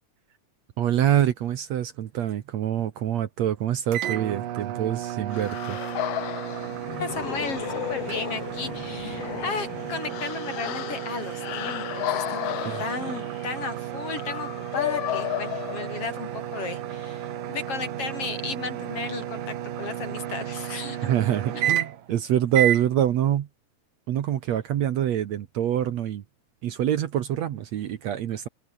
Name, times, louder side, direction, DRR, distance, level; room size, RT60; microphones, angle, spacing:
voice 1, 0.8-5.8 12.6-12.8 21.0-23.5 24.1-26.2 26.6-28.5, right 11 dB, 60° right, 2.2 m, -25 dB
sound 1, 3.9-22.1 22.5-22.9, right 12 dB, 90° right, 3.2 m, -32 dB
sound 2, 5.3-16.4, left 14 dB, 70° left, 1.5 m, -33 dB
voice 2, 6.9-21.1 21.5-21.6, left 5 dB, 45° left, 4.1 m, -35 dB
omnidirectional pair, 3.8 m